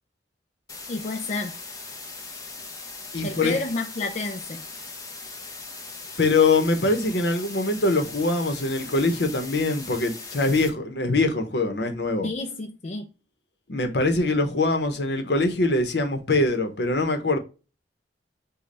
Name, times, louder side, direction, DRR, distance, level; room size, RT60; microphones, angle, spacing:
sound 1, 0.7-10.7, left 3 dB, 20° left, 0.9 m, -39 dB
voice 1, 0.9-1.6 3.2-4.6 12.2-13.1, left 3 dB, 40° left, 0.4 m, -30 dB
voice 2, 3.1-3.5 6.2-12.3 13.7-17.4, left 2 dB, 70° left, 0.9 m, -23 dB
5.2 x 2.3 x 4.0 m
head